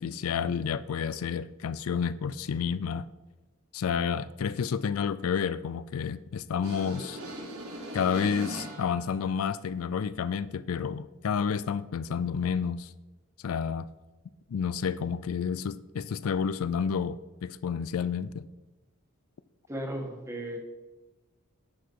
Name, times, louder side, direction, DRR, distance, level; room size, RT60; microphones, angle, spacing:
voice 1, 0.0-3.1 3.7-7.2 7.9-12.9 13.4-13.9 14.5-18.5, left 6 dB, 70° left, 15 dB, 0.4 m, -30 dB
sound 1, 6.6-9.1, right 1 dB, 90° right, 2.0 m, -39 dB
voice 2, 19.7-20.6, right 1 dB, 15° right, 2 dB, 1.7 m, -35 dB
10.5 x 7.1 x 4.6 m, 1.2 s
head